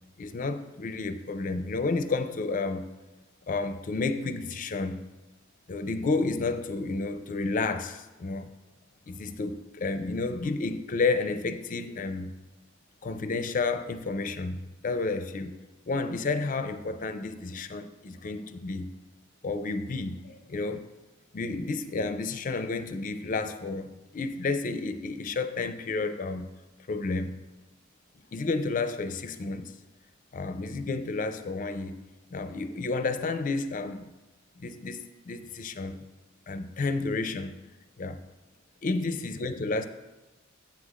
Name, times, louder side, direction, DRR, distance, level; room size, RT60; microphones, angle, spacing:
voice 1, 0.2-2.9 3.5-5.0 5.7-8.5 9.1-12.3 13.0-15.5 15.9-18.9 19.4-20.9 21.3-26.5 26.9-27.4 28.3-29.7 30.3-32.0 32.3-34.1 34.6-36.0 36.5-37.5 38.0-38.2 38.8-39.9, left 3 dB, 40° left, 0.4 m, -31 dB
8.5 x 8.1 x 2.5 m
head